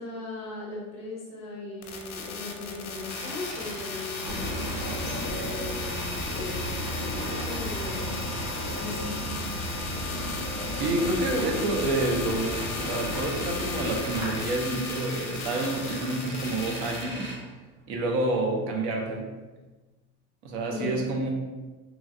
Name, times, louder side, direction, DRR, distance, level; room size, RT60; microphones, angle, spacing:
voice 1, 0.0-8.5 8.8-9.1 20.7-21.1, left 2 dB, 15° left, -4 dB, 0.6 m, -38 dB
sound 1, 1.8-17.0, left 5 dB, 55° left, 0.5 m, -37 dB
Tools, 2.7-18.3, right 1 dB, 20° right, 0.4 m, -39 dB
sound 2, 4.2-14.4, equal, 40° right, 0.9 m, -34 dB
voice 2, 10.7-17.3 17.9-19.3 20.4-21.3, right 2 dB, 70° right, 1 dB, 0.7 m, -28 dB
3.1 x 2.3 x 2.5 m, 1.2 s
cardioid pair, 175°, 37 cm